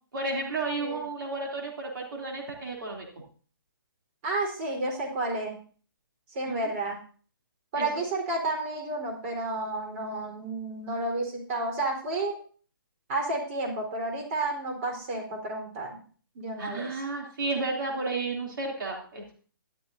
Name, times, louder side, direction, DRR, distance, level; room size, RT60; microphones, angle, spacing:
voice 1, 0.1-3.1 6.5-6.7 7.8-7.9 16.6-19.3, right 3 dB, 65° right, -1 dB, 3.1 m, -32 dB
voice 2, 0.7-1.0 4.2-5.6 6.3-7.0 7.7-12.4 13.1-16.0 16.3-16.9, right 2 dB, 35° right, 1 dB, 4.2 m, -31 dB
13.0 x 11.5 x 2.7 m, 0.42 s
hypercardioid pair, 140°, 12 cm